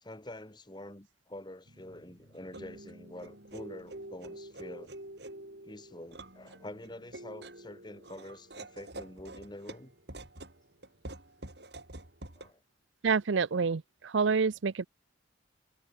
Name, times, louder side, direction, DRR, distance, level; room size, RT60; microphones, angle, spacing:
voice 1, 0.0-4.9 5.6-9.9 12.4-12.6, left 1 dB, 20° left, 1.4 m, -46 dB
sound 1, 1.7-12.5, right 1 dB, 60° right, 4.1 m, -47 dB
voice 2, 13.0-14.9, right 5 dB, 75° right, 0.6 m, -28 dB
head